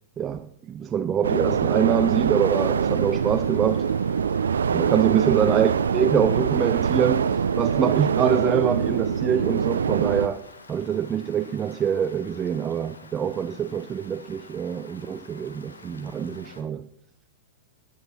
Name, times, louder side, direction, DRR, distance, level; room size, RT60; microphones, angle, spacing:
voice 1, 0.2-3.9 4.7-10.4 10.7-16.9, right 8 dB, 25° right, 0.6 m, -25 dB
sound 1, 1.2-10.3, right 7 dB, 75° right, 0.5 m, -24 dB
sound 2, 2.4-16.6, left 3 dB, 85° left, 1.4 m, -48 dB
19.0 x 8.6 x 4.3 m
figure-of-eight pair, 100°, 0 cm